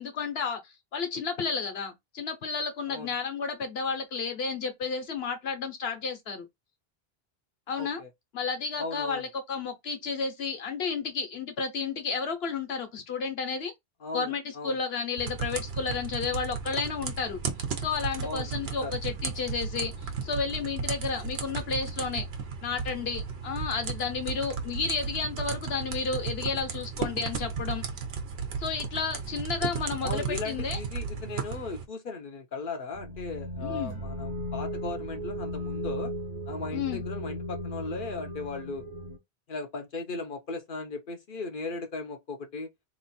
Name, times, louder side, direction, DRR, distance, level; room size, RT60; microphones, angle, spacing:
voice 1, 0.0-6.5 7.7-8.0 8.3-13.7 14.1-17.4 17.8-22.3 22.6-27.8 28.6-30.8 33.6-34.0 36.7-37.0, left 5 dB, 75° left, 1.2 m, -32 dB
voice 2, 7.8-8.1 8.8-9.2 14.0-14.7 18.2-19.0 30.0-36.1 36.5-38.8 39.5-42.7, left 3 dB, 60° left, 0.8 m, -37 dB
sound 1, 15.2-31.8, right 5 dB, 80° right, 1.0 m, -35 dB
sound 2, 32.9-39.2, equal, 45° right, 0.9 m, -36 dB
3.0 x 2.5 x 4.1 m
omnidirectional pair, 1.0 m